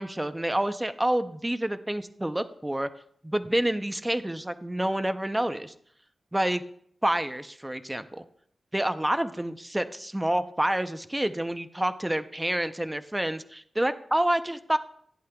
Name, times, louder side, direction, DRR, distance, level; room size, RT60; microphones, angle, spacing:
voice 1, 0.0-2.9 3.2-5.7 6.3-6.6 7.0-8.2 8.7-14.8, right 1 dB, 10° right, 10 dB, 0.5 m, -28 dB
15.0 x 10.0 x 2.3 m, 0.63 s
wide cardioid pair, 135°, 0 cm